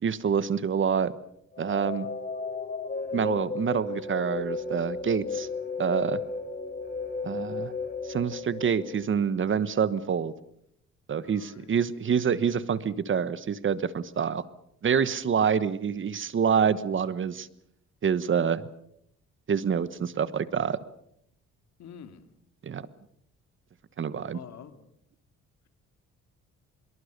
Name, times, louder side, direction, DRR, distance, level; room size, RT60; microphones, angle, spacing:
voice 1, 0.0-1.1 1.6-2.1 3.1-5.5 5.8-6.2 7.2-7.7 8.0-10.3 11.1-14.4 14.8-17.5 18.0-18.6 19.5-20.8 22.6-22.8 24.0-24.4, right 7 dB, 45° right, 15 dB, 1.2 m, -26 dB
sound 1, 1.5-9.5, left 4 dB, 30° left, 4.0 m, -34 dB
voice 2, 11.2-11.7 21.8-22.3 24.3-24.9, left 8 dB, 65° left, 8 dB, 2.7 m, -47 dB
24.5 x 22.5 x 6.7 m, 0.75 s
cardioid pair, 105°, 29 cm